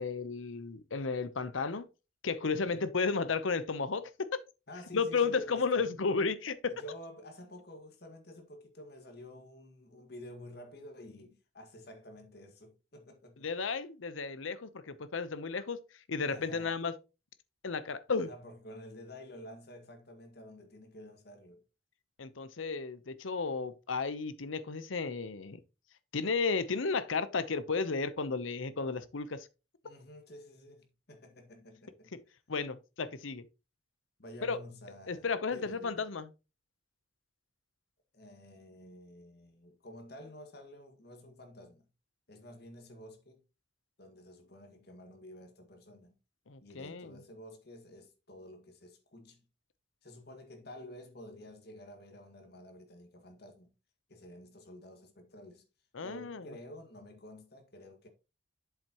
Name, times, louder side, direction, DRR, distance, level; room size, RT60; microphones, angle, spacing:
voice 1, 0.0-1.9 2.2-4.3 4.9-6.7 13.4-15.8 16.1-16.9 17.6-18.3 22.2-25.6 26.1-29.5 32.5-33.4 34.4-34.6 35.1-36.3 46.5-47.1 55.9-56.5, left 4 dB, 85° left, 0.8 m, -33 dB
voice 2, 4.7-6.0 6.7-13.5 16.3-16.7 18.2-21.6 29.8-32.1 34.2-36.1 38.1-41.9 42.3-43.4 44.0-46.2 46.6-49.5 50.0-53.7 54.1-55.6 56.0-58.1, left 1 dB, 55° left, 1.8 m, -50 dB
7.8 x 7.2 x 2.9 m
head